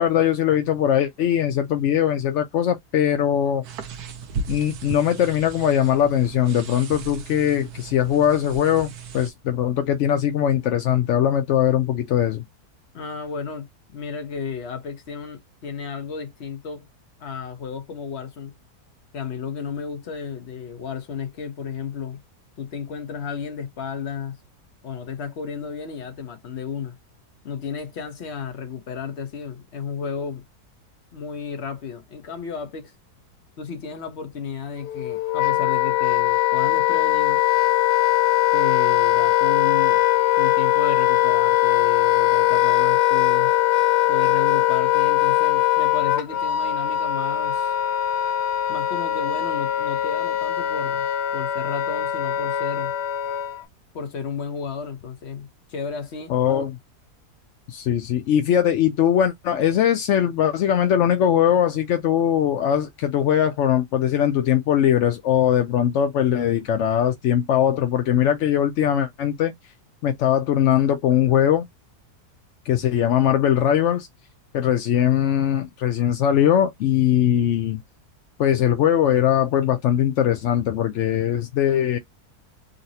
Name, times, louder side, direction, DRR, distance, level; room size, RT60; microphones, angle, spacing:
voice 1, 0.0-3.6 4.5-12.4 56.3-56.7 57.7-69.5 70.0-71.7 72.7-74.1 74.5-77.8 78.4-82.0, left 10 dB, 65° left, 0.7 m, -20 dB
sound 1, 3.6-9.3, right 4 dB, 75° right, 1.2 m, -36 dB
voice 2, 12.9-13.7 13.9-16.9 17.2-18.5 19.1-22.2 22.6-24.4 24.8-27.0 27.4-30.4 31.1-32.9 33.6-37.4 38.5-40.0 40.4-43.6 44.1-47.7 48.7-51.1 51.3-52.9 53.9-56.7, left 6 dB, 50° left, 1.1 m, -33 dB
Wind instrument woodwind instrument, 34.8-53.6, left 13 dB, 85° left, 1.2 m, -21 dB
4.0 x 2.1 x 2.7 m
omnidirectional pair, 1.7 m